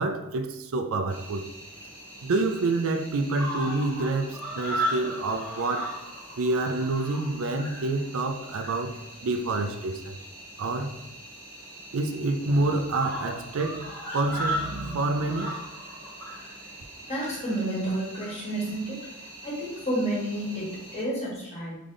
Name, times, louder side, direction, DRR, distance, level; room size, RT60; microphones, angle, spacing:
voice 1, 0.0-1.4 2.2-6.0 6.4-10.2 10.6-11.0 11.9-15.5, right 2 dB, 70° right, 0.4 m, -28 dB
Cricket, 1.1-21.0, right 1 dB, 10° left, 1.5 m, -38 dB
voice 2, 17.1-19.0 19.4-21.8, right 1 dB, 30° left, 1.4 m, -30 dB
3.7 x 3.4 x 3.8 m
head